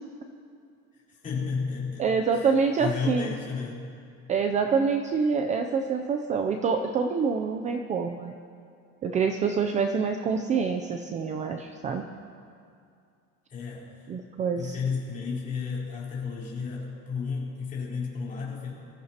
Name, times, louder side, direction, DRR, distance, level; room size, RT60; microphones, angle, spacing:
voice 1, 1.1-2.1 2.3-2.5 2.8-3.9 13.5-14.1 14.6-18.7, left 5 dB, 25° left, -6 dB, 3.9 m, -32 dB
voice 2, 2.0-3.3 4.3-8.3 9.0-12.1 14.1-14.8, right 5 dB, 25° right, 5 dB, 0.5 m, -26 dB
25.0 x 14.5 x 2.9 m, 2.4 s
cardioid pair, 165°, 30 cm